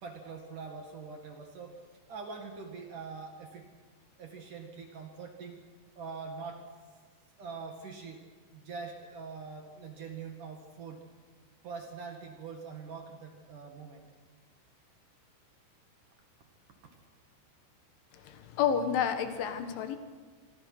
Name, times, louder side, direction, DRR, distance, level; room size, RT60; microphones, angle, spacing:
voice 1, 0.0-1.7 2.1-3.7 4.2-5.6 5.9-6.7 7.4-8.2 8.5-11.0 11.6-14.0, right 5 dB, 50° right, 3 dB, 2.9 m, -43 dB
voice 2, 18.2-20.0, left 8 dB, 75° left, 8 dB, 3.9 m, -30 dB
27.5 x 22.5 x 6.1 m, 1.5 s
omnidirectional pair, 5.7 m